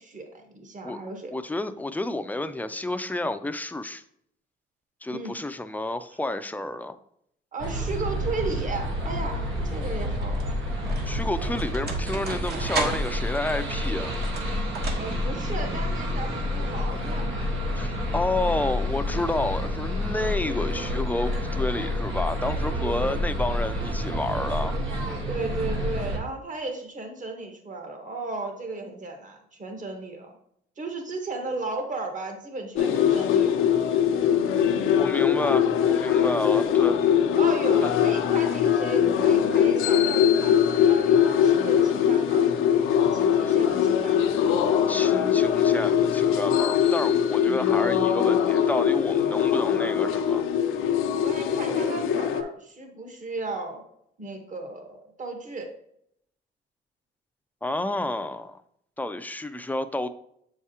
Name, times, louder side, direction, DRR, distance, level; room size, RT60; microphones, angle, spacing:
voice 1, 0.0-1.3 5.1-5.3 7.5-10.5 14.9-17.5 22.9-23.2 25.3-30.3 30.8-33.7 37.4-42.5 43.0-44.3 51.2-53.8 54.2-55.7, right 3 dB, 40° right, 4 dB, 1.4 m, -35 dB
voice 2, 1.3-4.0 5.0-7.0 11.1-14.1 17.8-24.8 35.0-37.0 37.8-37.9 43.4-43.5 44.9-50.4 57.6-58.6 59.0-60.1, left 2 dB, 10° left, 11 dB, 0.4 m, -30 dB
sound 1, 7.6-26.2, left 1 dB, 80° right, 1.4 m, -29 dB
sound 2, 9.0-9.1 10.0-15.5, right 2 dB, 55° right, 1.4 m, -35 dB
sound 3, 32.7-52.4, left 8 dB, 90° left, 0.6 m, -22 dB
7.2 x 4.8 x 2.9 m, 0.70 s
cardioid pair, 90°, 20 cm